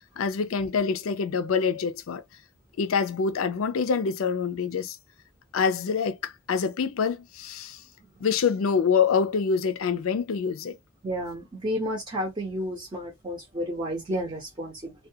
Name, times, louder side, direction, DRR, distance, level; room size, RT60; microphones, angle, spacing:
voice 1, 0.2-2.2 2.8-5.0 5.5-7.8 8.2-10.8, left 6 dB, 75° left, 0.4 m, -26 dB
voice 2, 11.0-14.9, equal, 25° right, 0.7 m, -31 dB
2.3 x 2.2 x 2.7 m
head